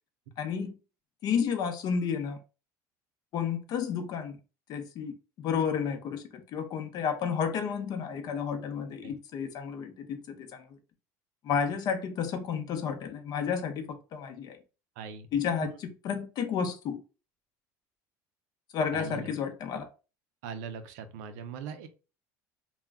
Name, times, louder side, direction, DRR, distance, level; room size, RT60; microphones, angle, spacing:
voice 1, 0.4-0.7 1.2-2.4 3.3-4.4 4.7-10.8 11.4-14.6 15.3-17.0 18.7-19.9, left 7 dB, 50° left, 0.6 m, -31 dB
voice 2, 15.0-15.3 15.6-15.8 18.9-19.3 20.4-21.9, right 6 dB, 85° right, 0.5 m, -40 dB
2.3 x 2.1 x 3.4 m
supercardioid pair, 110°, 8 cm